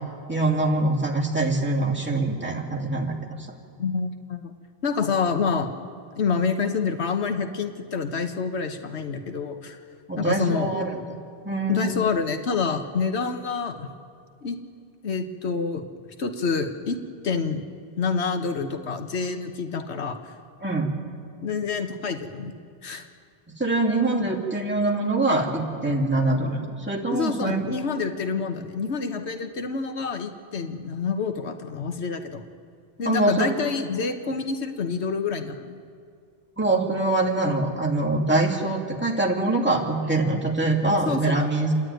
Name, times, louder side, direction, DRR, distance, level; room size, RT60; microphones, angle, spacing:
voice 1, 0.3-3.5 10.1-11.0 11.4-12.0 20.6-20.9 23.6-27.6 33.0-33.5 36.6-41.7, right 2 dB, 10° right, -3 dB, 2.6 m, -24 dB
voice 2, 3.8-4.5 4.8-5.7 6.2-9.8 10.2-10.7 11.7-13.9 14.4-14.6 15.0-15.9 16.2-17.6 18.0-20.2 21.4-22.6 22.8-23.1 27.1-32.4 33.0-35.8 41.1-41.4, left 5 dB, 90° left, 7 dB, 1.4 m, -27 dB
29.0 x 11.0 x 9.1 m, 2.3 s
omnidirectional pair, 1.1 m